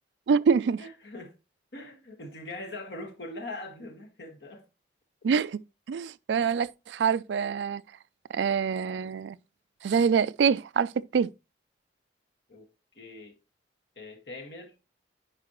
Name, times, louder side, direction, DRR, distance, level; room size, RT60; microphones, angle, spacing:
voice 1, 0.3-0.8 5.2-5.6 5.9-7.8 8.3-9.4 9.8-11.3, right 6 dB, 75° right, 0.3 m, -25 dB
voice 2, 0.8-1.3 1.7-4.6 5.3-5.5 6.3-6.6 12.5-12.7 13.0-13.3 14.0-14.7, left 2 dB, 70° left, 1.8 m, -42 dB
9.5 x 5.3 x 3.0 m
head